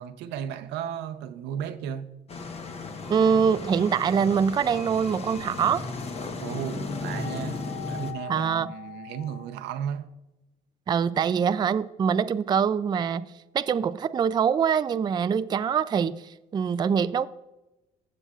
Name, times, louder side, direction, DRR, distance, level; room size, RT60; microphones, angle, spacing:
voice 1, 0.0-2.1 6.4-10.1, right 9 dB, 85° right, 0.7 m, -35 dB
sound 1, 2.3-8.1, left 3 dB, 40° left, 1.1 m, -35 dB
sound 2, 3.0-9.4, left 9 dB, 75° left, 3.1 m, -45 dB
voice 2, 3.1-5.8 8.3-8.7 10.9-17.3, right 7 dB, 25° right, 0.3 m, -24 dB
16.0 x 6.9 x 2.4 m
cardioid pair, 110°, 17 cm